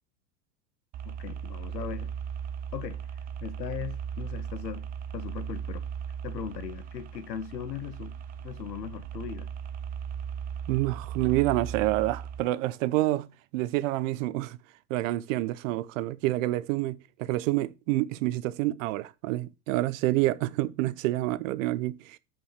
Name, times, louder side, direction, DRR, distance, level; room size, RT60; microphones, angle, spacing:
sound 1, 0.9-12.4, right 8 dB, 20° right, 0.4 m, -37 dB
voice 1, 1.0-2.1 2.7-3.0 3.4-4.9 5.1-5.8 6.2-8.2 8.4-9.5, left 8 dB, 85° left, 1.2 m, -38 dB
voice 2, 10.7-13.3 13.5-14.6 14.9-22.2, right 17 dB, 50° right, 0.7 m, -28 dB
5.6 x 5.4 x 6.5 m
hypercardioid pair, 125°, 49 cm